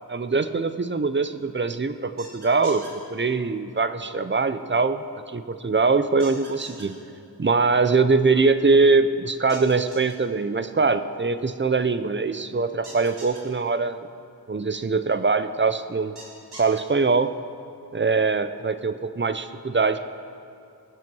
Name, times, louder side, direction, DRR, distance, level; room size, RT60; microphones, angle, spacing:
voice 1, 0.1-7.0 7.4-14.0 14.5-16.1 16.6-17.3 17.9-20.0, right 4 dB, 30° right, 11 dB, 0.6 m, -22 dB
sound 1, 2.2-2.9 6.2-6.8 9.5-10.1 12.8-13.4 16.2-16.8, right 2 dB, 85° right, 2.9 m, -42 dB
21.5 x 7.7 x 6.2 m, 2.5 s
wide cardioid pair, 65°, 39 cm